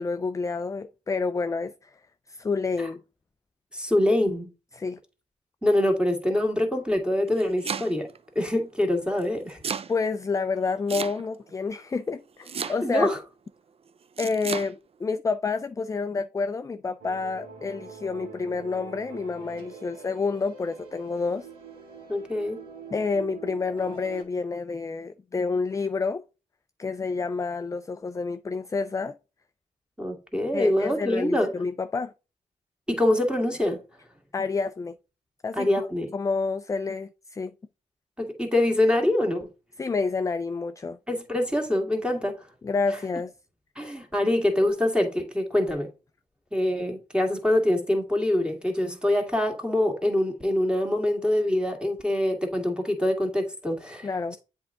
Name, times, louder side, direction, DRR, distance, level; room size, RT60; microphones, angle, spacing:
voice 1, 0.0-1.9 2.3-3.0 4.8-5.0 9.9-13.1 14.2-21.5 22.9-26.2 26.8-29.2 30.5-32.1 34.3-35.0 35.4-35.9 36.1-37.5 39.8-41.0 42.6-43.3 54.0-54.4, left 4 dB, 20° left, 0.4 m, -29 dB
voice 2, 3.7-4.5 5.6-8.1 8.4-9.6 12.6-13.2 22.1-22.6 30.0-31.5 32.9-33.8 35.5-36.1 38.2-39.5 41.1-42.5 43.8-45.9 46.5-54.4, left 1 dB, 5° right, 2.0 m, -25 dB
Domestic sounds home sounds, 7.1-8.2 9.2-9.9 10.9-11.5 12.5-13.1 14.2-14.7, right 6 dB, 40° right, 0.4 m, -33 dB
sound 1, 17.0-24.2, right 5 dB, 75° right, 2.1 m, -44 dB
7.7 x 3.6 x 3.7 m
supercardioid pair, 55°, 16 cm